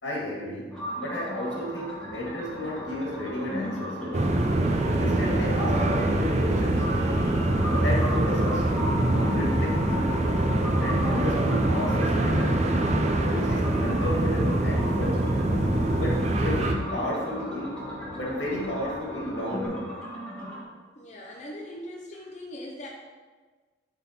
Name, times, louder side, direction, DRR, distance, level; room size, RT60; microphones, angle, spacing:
voice 1, 0.0-4.3 4.9-6.9 7.8-8.7 9.1-10.3 10.8-12.7 13.2-15.3 15.8-17.8 18.1-19.9, left 1 dB, 85° left, -4 dB, 2.1 m, -33 dB
sound 1, 0.7-20.6, equal, 5° left, 1.5 m, -37 dB
ab abyss atmos, 2.4-19.7, equal, 65° right, 1.9 m, -40 dB
sound 2, 4.1-16.8, right 1 dB, 40° right, 0.5 m, -24 dB
voice 2, 21.0-22.9, left 1 dB, 40° left, -2 dB, 0.7 m, -40 dB
8.0 x 3.7 x 4.5 m, 1.4 s
head